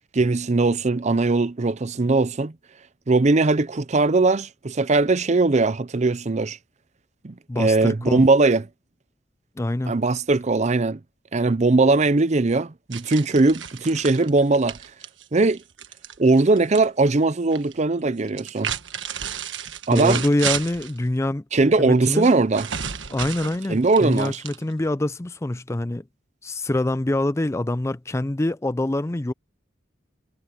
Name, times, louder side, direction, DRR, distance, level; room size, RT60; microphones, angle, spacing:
voice 1, 0.1-2.5 3.1-6.6 7.2-8.7 9.9-11.0 11.3-14.8 15.3-15.6 16.2-18.7 19.9-20.2 21.5-22.7 23.7-24.4, right 3 dB, 35° right, 0.6 m, -20 dB
voice 2, 7.5-8.2 9.6-10.0 19.9-21.4 21.8-22.3 23.1-26.0 26.4-29.3, left 1 dB, 15° left, 0.4 m, -25 dB
sound 1, 12.9-16.9 17.1-17.7 18.3-21.0 22.2-24.9, right 8 dB, 80° right, 1.5 m, -32 dB
head